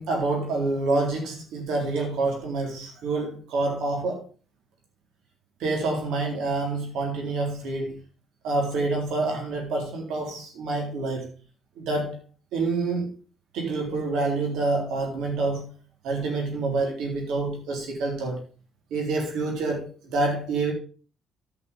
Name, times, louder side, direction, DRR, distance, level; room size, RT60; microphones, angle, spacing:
voice 1, 0.0-4.2 5.6-8.0 8.4-11.3 11.8-12.2 12.5-13.1 13.5-15.7 16.0-18.4 18.9-20.7, right 3 dB, 90° right, 3.7 m, -27 dB
11.0 x 6.0 x 5.1 m
cardioid pair, 90°, 0 cm